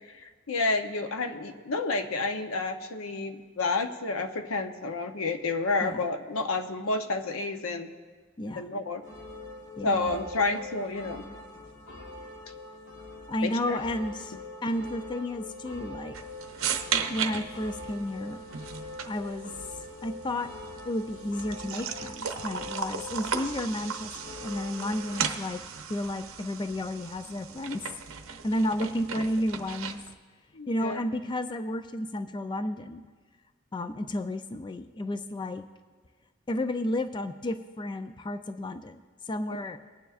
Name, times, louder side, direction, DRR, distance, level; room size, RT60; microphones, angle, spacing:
voice 1, 0.2-7.9 8.5-9.0 9.8-11.3 13.4-13.8 30.5-31.0, left 3 dB, 85° left, 7 dB, 0.8 m, -30 dB
voice 2, 8.4-8.7 9.8-10.2 13.3-14.3 14.6-16.2 17.1-18.4 19.1-19.5 20.0-20.5 20.9-25.6 25.9-27.9 28.4-30.0 30.7-33.0 33.7-35.6 36.5-39.8, left 1 dB, 20° left, 9 dB, 0.4 m, -32 dB
sound 1, 9.0-25.2, left 2 dB, 60° left, 1.3 m, -44 dB
gas cooldrink open and pour, 16.1-30.1, right 7 dB, 75° right, 0.7 m, -36 dB
24.5 x 9.3 x 2.5 m, 1.5 s
head